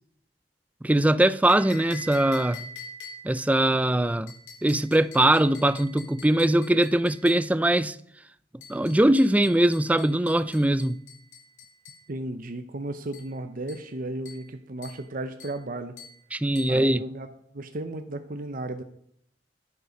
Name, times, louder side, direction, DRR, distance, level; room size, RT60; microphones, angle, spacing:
voice 1, 0.8-2.7 3.2-4.3 4.6-8.0 8.7-11.0 16.3-17.0, right 1 dB, 10° right, 0.3 m, -21 dB
sound 1, 1.5-3.4 4.3-7.5 8.6-12.1 13.1-13.3 13.7-13.9 14.2-14.5 14.8-15.1 15.4-15.6 16.0-16.2 16.5-16.8, left 3 dB, 85° left, 3.9 m, -45 dB
voice 2, 12.1-16.0 16.7-18.8, right 2 dB, 50° right, 0.8 m, -34 dB
11.5 x 8.2 x 5.2 m
head